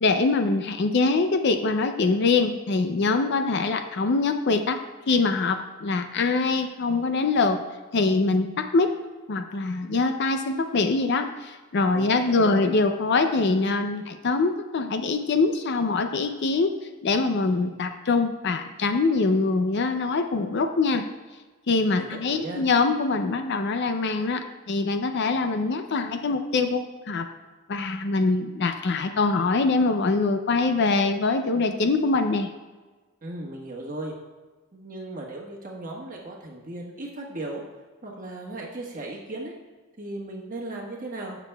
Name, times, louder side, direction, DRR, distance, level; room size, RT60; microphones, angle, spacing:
voice 1, 0.0-4.8 5.1-7.6 7.9-8.9 9.3-16.7 17.0-21.1 21.7-27.3 27.7-32.5, left 3 dB, 50° left, 7 dB, 0.4 m, -24 dB
voice 2, 11.9-12.6 22.0-22.6 33.2-34.1 34.7-37.6 38.0-39.5 40.0-41.4, right 2 dB, 35° right, -2 dB, 1.3 m, -36 dB
16.5 x 6.0 x 2.3 m, 1.3 s
head